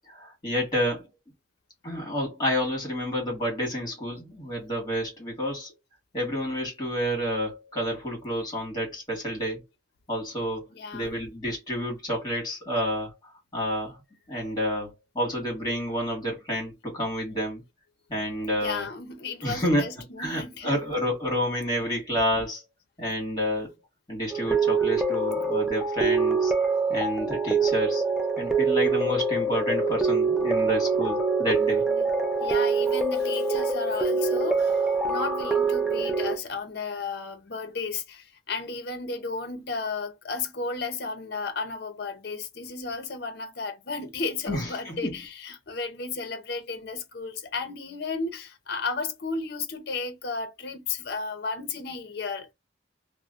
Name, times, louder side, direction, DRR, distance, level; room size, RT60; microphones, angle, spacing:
voice 1, 0.1-1.1 1.8-5.7 6.1-9.6 10.1-10.7 10.9-13.1 13.5-14.0 14.3-14.9 15.1-17.6 18.1-18.9 19.4-22.6 23.0-23.7 24.1-26.5 26.9-28.0 28.4-31.8 44.5-45.2, equal, 20° left, 1.6 m, -29 dB
voice 2, 10.7-11.1 18.5-20.8 21.8-21.9 31.8-32.1 32.4-52.5, left 4 dB, 55° left, 0.6 m, -34 dB
sound 1, 24.3-36.4, right 4 dB, ahead, 0.4 m, -25 dB
3.0 x 2.0 x 2.4 m
head